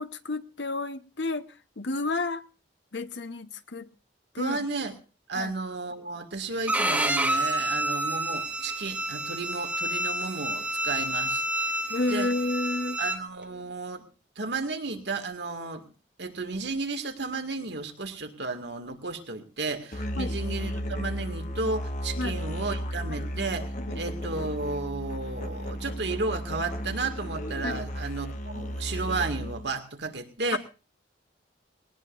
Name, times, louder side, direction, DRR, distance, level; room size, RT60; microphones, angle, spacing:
voice 1, 0.0-1.5 1.8-2.4 2.9-3.9 4.3-4.6 5.4-5.5 11.9-13.0 20.2-20.4 22.2-22.4 23.1-23.3 23.9-24.0 27.6-27.9 30.5-30.6, left 2 dB, 75° left, 1.1 m, -31 dB
voice 2, 4.4-5.0 5.3-11.4 12.1-12.3 13.0-14.1 14.4-15.8 16.2-30.6, right 3 dB, 70° right, 2.1 m, -33 dB
Bowed string instrument, 6.7-13.2, right 1 dB, 10° right, 1.5 m, -29 dB
Musical instrument, 19.9-29.7, equal, 45° left, 1.4 m, -34 dB
20.0 x 19.0 x 2.6 m
head